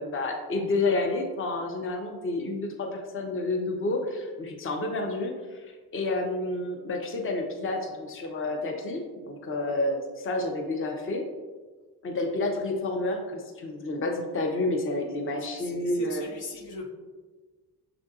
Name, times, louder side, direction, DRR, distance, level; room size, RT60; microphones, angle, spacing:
voice 1, 0.0-11.2 12.0-16.2, left 2 dB, 30° left, 2 dB, 0.7 m, -30 dB
voice 2, 15.4-16.9, left 3 dB, 70° left, 0 dB, 0.9 m, -41 dB
6.6 x 2.5 x 2.4 m, 1.4 s
supercardioid pair, 60°, 39 cm